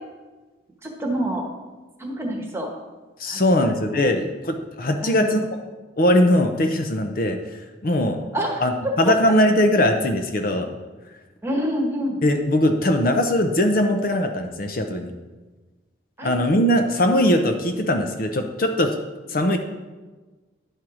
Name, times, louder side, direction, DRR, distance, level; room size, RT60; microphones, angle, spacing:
voice 1, 0.8-1.5 2.0-2.7 3.3-4.2 5.0-5.4 8.3-8.7 9.1-9.2 11.4-12.2 16.2-16.3, equal, 15° right, 0 dB, 1.1 m, -27 dB
voice 2, 3.2-5.4 6.0-8.2 8.6-10.7 12.2-15.1 16.2-19.0 19.3-19.6, left 1 dB, 50° left, 5 dB, 0.6 m, -20 dB
10.5 x 4.5 x 4.9 m, 1.3 s
head